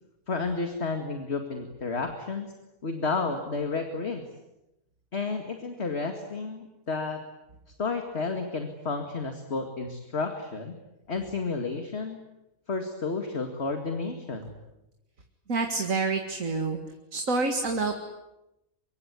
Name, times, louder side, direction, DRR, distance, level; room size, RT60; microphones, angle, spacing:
voice 1, 0.3-2.5 2.8-4.2 5.1-7.2 7.8-10.7 11.1-12.2 12.7-14.6, left 4 dB, 50° left, 5 dB, 2.4 m, -31 dB
voice 2, 15.5-16.8 17.1-17.9, right 3 dB, 70° right, 5 dB, 2.4 m, -27 dB
24.5 x 23.0 x 9.6 m, 0.93 s
omnidirectional pair, 1.4 m